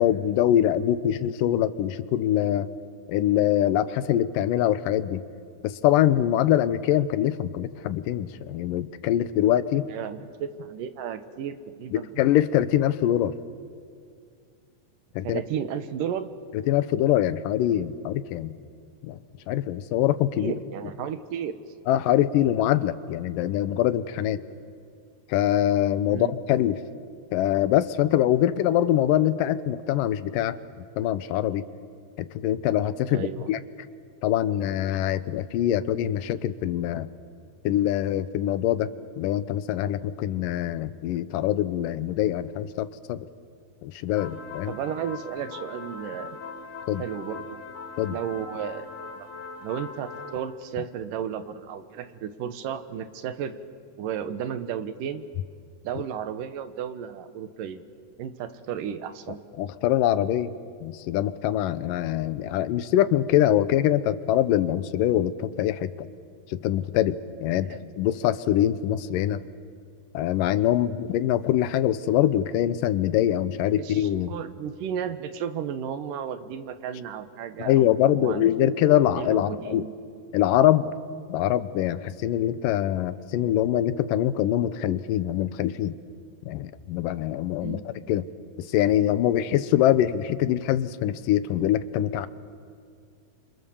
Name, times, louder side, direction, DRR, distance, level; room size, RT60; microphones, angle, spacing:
voice 1, 0.0-2.7 3.1-5.2 5.6-9.8 11.9-13.3 15.2-15.4 16.7-18.6 19.0-19.2 19.5-20.5 21.9-24.4 25.3-26.8 27.3-30.6 31.0-31.6 32.2-33.6 34.2-37.1 37.6-38.9 39.2-43.3 43.8-44.7 46.9-47.0 48.0-48.2 59.6-60.5 60.8-66.1 66.5-69.4 70.1-74.3 77.6-79.9 80.3-80.9 81.3-85.9 86.5-87.8 88.1-88.2 88.6-92.3, left 12 dB, 80° left, 14 dB, 2.5 m, -24 dB
voice 2, 9.9-12.1 15.2-16.3 20.3-21.5 26.1-26.3 33.1-33.5 44.7-46.4 47.0-47.6 48.1-48.9 49.2-53.6 54.0-55.2 55.8-57.8 58.2-59.5 67.6-67.8 73.8-78.8 79.1-79.9 87.6-87.9, right 8 dB, 80° right, 10 dB, 2.8 m, -33 dB
sound 1, 44.2-50.4, left 4 dB, 55° left, 2.7 m, -40 dB
29.5 x 26.5 x 7.1 m, 2.4 s
omnidirectional pair, 3.9 m